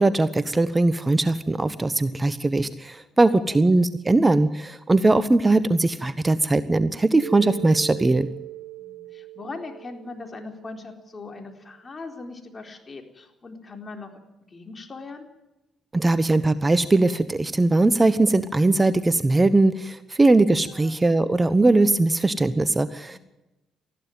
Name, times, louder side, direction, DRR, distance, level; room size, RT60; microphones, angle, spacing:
voice 1, 0.0-8.3 15.9-23.2, right 2 dB, 20° right, 14 dB, 1.1 m, -20 dB
voice 2, 3.3-3.7 8.8-14.1 14.5-15.3 20.6-21.0 23.0-23.2, left 3 dB, 35° left, 4 dB, 4.1 m, -40 dB
Mallet percussion, 7.2-11.4, right 17 dB, 65° right, 0.7 m, -40 dB
20.0 x 14.5 x 9.4 m, 0.99 s
hypercardioid pair, 50°, 0 cm